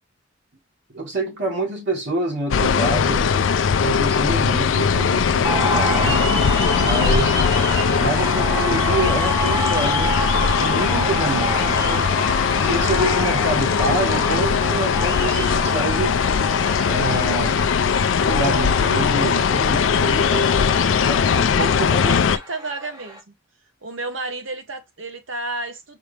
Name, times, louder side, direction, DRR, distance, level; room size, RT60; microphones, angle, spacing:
voice 1, 0.9-3.4 3.8-6.2 6.8-7.4 8.0-10.2 10.6-12.1 12.6-16.2 16.9-17.6 18.2-20.4 21.1-22.2, right 2 dB, 60° right, 1.9 m, -27 dB
sound 1, 2.5-22.4, left 6 dB, 70° left, 0.4 m, -20 dB
sound 2, 5.4-23.2, equal, 20° right, 1.2 m, -28 dB
voice 2, 20.2-20.8 22.1-23.3 23.8-26.0, right 2 dB, 75° right, 1.2 m, -32 dB
4.8 x 2.8 x 3.2 m
head